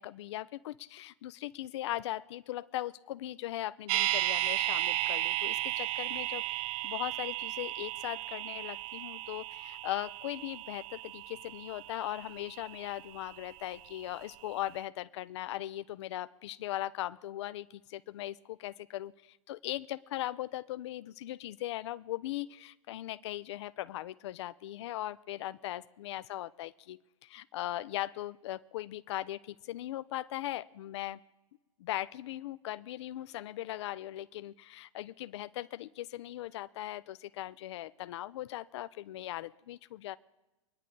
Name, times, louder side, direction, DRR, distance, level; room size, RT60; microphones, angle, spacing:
voice 1, 0.0-31.2 31.8-40.2, left 14 dB, 55° left, 15 dB, 0.5 m, -39 dB
sound 1, 3.9-13.9 14.2-14.3, right 17 dB, 30° right, 0.4 m, -35 dB
24.5 x 10.0 x 3.8 m, 1.0 s
figure-of-eight pair, 100°, 17 cm